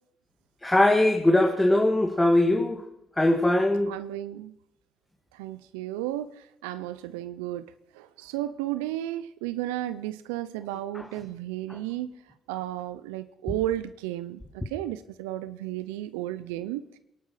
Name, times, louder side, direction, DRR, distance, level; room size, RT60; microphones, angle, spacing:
voice 1, 0.6-2.8 3.2-3.9 10.9-11.0 11.7-11.8, left 1 dB, 15° left, 3 dB, 2.2 m, -21 dB
voice 2, 3.9-4.5 5.3-12.1 12.5-16.9, right 14 dB, 90° right, 13 dB, 0.5 m, -33 dB
22.5 x 11.0 x 5.7 m, 0.79 s
hypercardioid pair, 50°, 0 cm